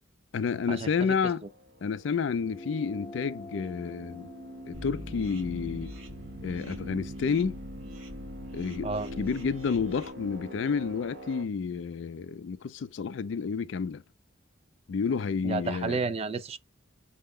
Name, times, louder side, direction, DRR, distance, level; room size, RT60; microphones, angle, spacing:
voice 1, 0.3-1.4 1.8-4.3 4.7-5.9 6.4-7.6 8.5-8.9 9.2-14.0 14.9-16.0, left 5 dB, 65° left, 0.4 m, -30 dB
sound 1, 1.4-11.4, equal, 60° right, 1.0 m, -44 dB
sound 2, 2.4-7.2, left 2 dB, 25° left, 0.6 m, -48 dB
sound 3, 4.7-10.1, equal, 85° right, 1.4 m, -44 dB
voice 2, 15.4-16.6, right 4 dB, 30° right, 0.4 m, -31 dB
5.4 x 2.1 x 3.6 m
head